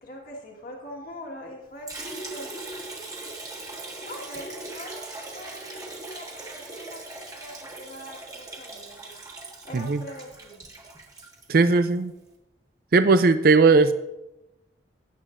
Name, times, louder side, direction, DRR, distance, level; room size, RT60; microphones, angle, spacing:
voice 1, 0.0-2.6 4.0-9.2 9.6-10.7, equal, 50° left, -1 dB, 1.7 m, -43 dB
Liquid, 1.9-12.0, right 2 dB, 20° right, 1.6 m, -40 dB
voice 2, 11.5-12.1 12.9-13.9, right 4 dB, 55° right, 10 dB, 0.4 m, -18 dB
18.0 x 8.2 x 2.5 m, 0.95 s
head